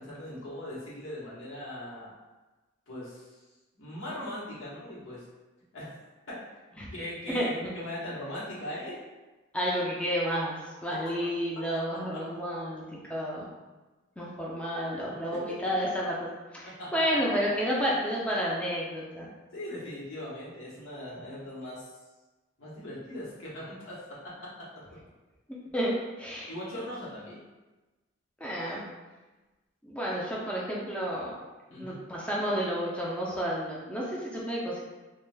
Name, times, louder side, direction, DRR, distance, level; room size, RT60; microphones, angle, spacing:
voice 1, 0.0-2.1 2.9-3.4 3.7-5.2 5.7-5.9 6.3-6.4 6.9-9.0 15.3-15.4 16.8-17.2 19.5-22.0 22.6-24.7 26.5-27.5 31.7-32.0, left 1 dB, 80° left, -8 dB, 0.9 m, -40 dB
voice 2, 7.3-7.7 9.5-13.4 14.2-19.3 25.5-26.5 28.4-28.8 29.8-31.4 31.7-34.8, equal, 5° left, -5 dB, 0.4 m, -31 dB
2.5 x 2.2 x 3.2 m, 1.2 s
head